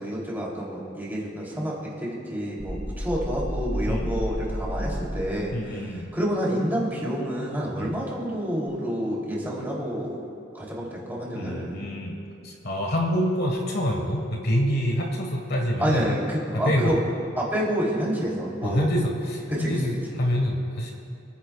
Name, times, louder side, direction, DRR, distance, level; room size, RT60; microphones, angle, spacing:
voice 1, 0.0-10.2 10.5-11.8 15.8-17.0 17.4-18.9 19.5-19.8, equal, 10° right, -5 dB, 2.8 m, -28 dB
sound 1, 2.6-5.4, equal, 35° left, 2.3 m, -31 dB
voice 2, 5.5-6.1 7.8-7.9 11.3-12.2 12.4-16.1 16.6-17.0 18.6-20.9, equal, 55° left, 1 dB, 1.4 m, -26 dB
28.5 x 10.5 x 2.3 m, 2.7 s
head